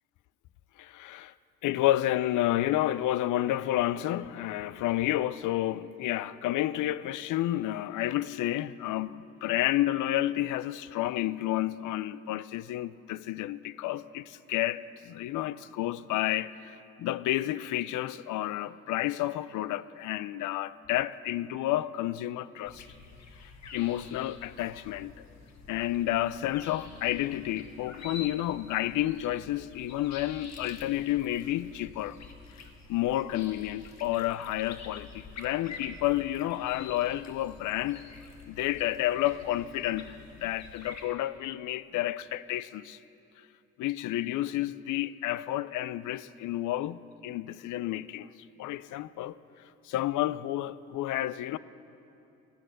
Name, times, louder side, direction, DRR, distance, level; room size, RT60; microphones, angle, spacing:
voice 1, 0.8-1.3 1.6-22.8 23.7-25.1 25.7-32.2 32.9-38.1 38.5-43.0 43.8-48.3 48.6-49.4 49.8-51.6, left 14 dB, 80° left, 0.5 m, -30 dB
sound 1, 22.7-41.1, left 4 dB, 60° left, 1.4 m, -48 dB
17.0 x 10.5 x 6.4 m
cardioid pair, 90°, 30 cm